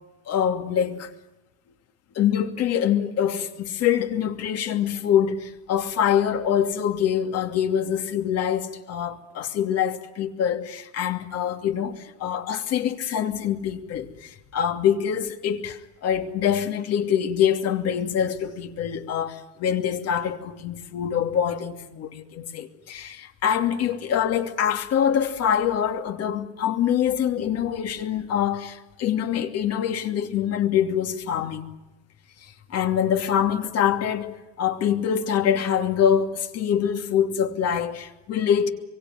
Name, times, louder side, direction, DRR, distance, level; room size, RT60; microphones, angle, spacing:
voice 1, 0.3-1.1 2.1-31.7 32.4-38.7, left 9 dB, 45° left, 2.8 m, -25 dB
26.5 x 24.0 x 9.4 m
cardioid pair, 130°, 34 cm